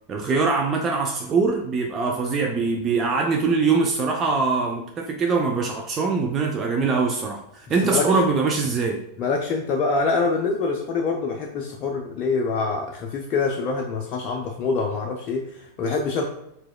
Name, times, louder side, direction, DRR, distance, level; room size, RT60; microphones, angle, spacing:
voice 1, 0.1-9.0, right 4 dB, 25° right, 1 dB, 0.5 m, -23 dB
voice 2, 7.8-8.3 9.2-16.2, left 4 dB, 35° left, 1 dB, 0.4 m, -25 dB
4.7 x 3.9 x 2.2 m, 0.80 s
figure-of-eight pair, 90°, 0 cm